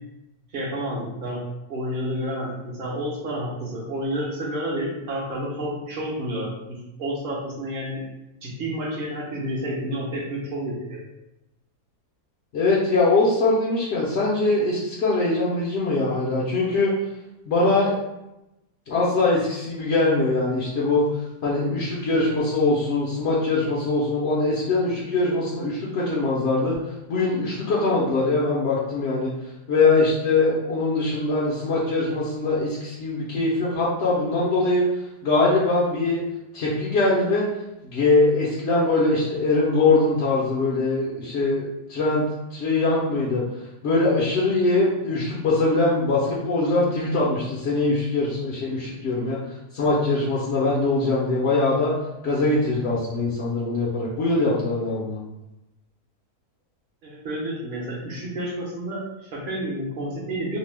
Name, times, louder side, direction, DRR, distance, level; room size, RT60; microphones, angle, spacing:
voice 1, 0.5-1.4 1.7-8.0 8.4-11.0 57.0-60.6, right 1 dB, 45° right, -4 dB, 0.7 m, -30 dB
voice 2, 12.5-16.9 17.5-17.9 18.9-21.0 21.4-26.8 27.1-29.3 29.7-34.8 35.2-36.2 36.5-37.5 37.8-42.2 42.5-43.4 43.8-49.4 49.7-51.9 52.2-55.2, left 3 dB, 60° left, -6 dB, 0.7 m, -22 dB
2.9 x 2.1 x 3.2 m, 0.91 s
omnidirectional pair, 1.7 m